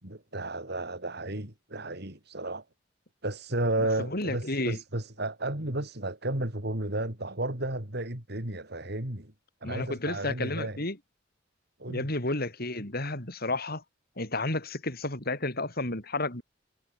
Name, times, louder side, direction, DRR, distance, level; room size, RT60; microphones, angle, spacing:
voice 1, 0.0-2.6 3.2-9.3 9.6-10.8 11.8-12.1, right 2 dB, 60° right, 4.4 m, -33 dB
voice 2, 3.8-4.8 9.6-11.0 11.9-13.8 14.2-16.4, left 2 dB, 55° left, 7.4 m, -32 dB
head